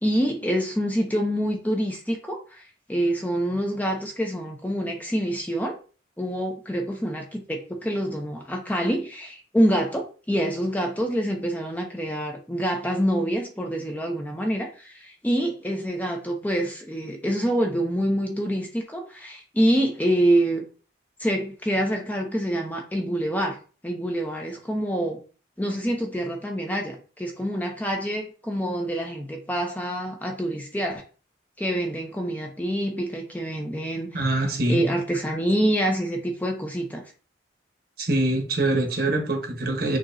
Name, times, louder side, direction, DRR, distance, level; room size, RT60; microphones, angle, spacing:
voice 1, 0.0-5.8 6.2-20.6 21.2-25.2 25.6-31.0 31.6-34.2 34.7-37.0, equal, 10° left, 0.7 m, -26 dB
voice 2, 34.1-34.8 38.0-40.0, right 2 dB, 55° right, 1.2 m, -24 dB
6.3 x 3.0 x 2.7 m
head